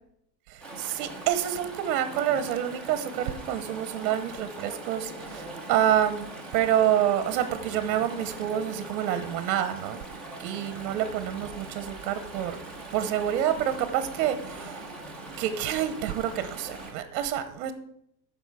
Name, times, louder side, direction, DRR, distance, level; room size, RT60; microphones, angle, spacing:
voice 1, 0.5-10.0 10.4-12.6 12.9-14.8 15.4-17.7, right 10 dB, 60° right, 10 dB, 1.0 m, -28 dB
Chatter / Stream, 0.6-16.9, right 2 dB, ahead, 1.0 m, -41 dB
12.5 x 5.0 x 4.8 m, 0.75 s
supercardioid pair, 170°, 48 cm